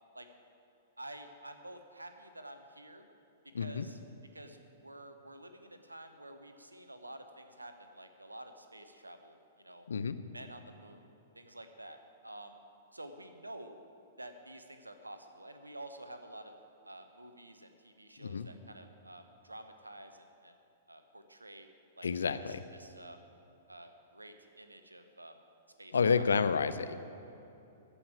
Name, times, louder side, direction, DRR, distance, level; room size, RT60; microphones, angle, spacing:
voice 1, 1.0-3.1 3.4-4.0 4.3-9.9 10.3-11.1 11.3-12.6 12.9-13.8 14.2-16.6 16.8-20.5 20.9-21.7 22.0-22.1 22.4-23.2 23.7-25.4 25.8-26.3, right 1 dB, 90° right, 7 dB, 1.0 m, -50 dB
voice 2, 3.5-3.9 9.9-10.2 18.2-18.5 22.0-22.6 25.9-26.9, left 5 dB, 70° left, 12 dB, 0.6 m, -30 dB
14.0 x 5.6 x 8.7 m, 2.8 s
figure-of-eight pair, 110°, 0 cm